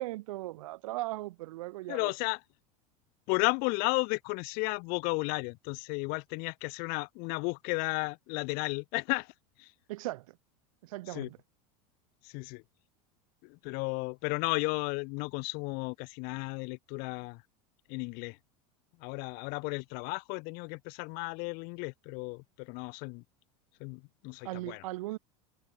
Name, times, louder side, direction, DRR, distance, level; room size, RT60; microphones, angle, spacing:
voice 1, 0.0-2.1 9.9-10.4 10.8-11.4 24.4-25.2, right 18 dB, 80° right, 1.7 m, -38 dB
voice 2, 1.9-2.4 3.3-9.3 9.6-9.7 11.1-11.3 12.2-12.6 13.4-17.4 17.9-18.4 19.0-23.2 23.8-24.8, left 31 dB, 60° left, 3.3 m, -34 dB
supercardioid pair, 120°, 17 cm